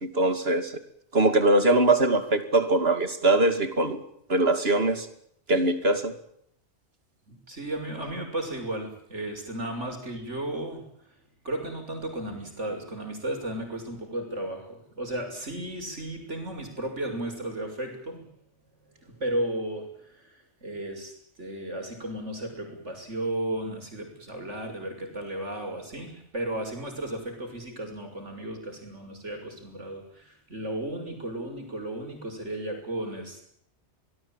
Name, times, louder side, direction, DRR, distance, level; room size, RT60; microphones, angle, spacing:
voice 1, 0.0-0.8 1.1-4.0 4.3-5.1 5.5-6.1, right 2 dB, 60° right, 10 dB, 2.9 m, -22 dB
voice 2, 7.3-10.8 11.4-18.3 18.9-33.5, right 1 dB, 85° right, 4 dB, 6.8 m, -34 dB
24.5 x 19.5 x 9.0 m, 0.70 s
omnidirectional pair, 1.2 m